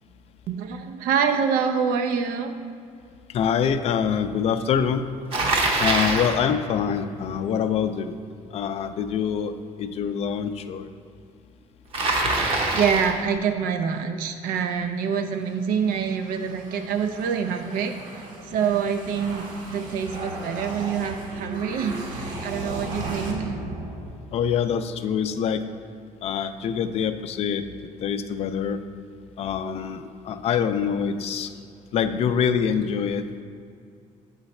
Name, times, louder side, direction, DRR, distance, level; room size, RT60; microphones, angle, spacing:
voice 1, 0.5-2.5 12.7-23.6, right 6 dB, 85° right, 7 dB, 0.6 m, -26 dB
voice 2, 3.3-5.1 5.8-8.2 8.5-10.9 24.3-25.6 26.2-27.6 28.0-28.8 29.4-31.5 31.9-33.2, left 7 dB, 45° left, 9 dB, 0.4 m, -25 dB
Bicycle, 5.3-6.4 11.9-13.2, right 2 dB, 40° right, 0.8 m, -23 dB
sound 1, 15.2-24.6, right 1 dB, 65° right, 1.1 m, -36 dB
7.9 x 4.0 x 4.2 m, 2.3 s
cardioid pair, 160°, 14 cm